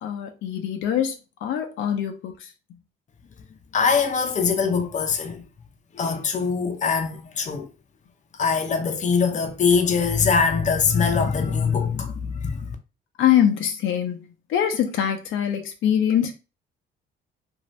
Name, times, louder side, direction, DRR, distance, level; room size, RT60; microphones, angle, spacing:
voice 1, 0.0-2.5 13.2-16.3, left 9 dB, 75° left, 0.6 m, -23 dB
voice 2, 3.7-5.4 5.9-7.7 8.3-12.8, left 5 dB, 40° left, 0.6 m, -22 dB
2.6 x 2.4 x 3.2 m
cardioid pair, 90°, 20 cm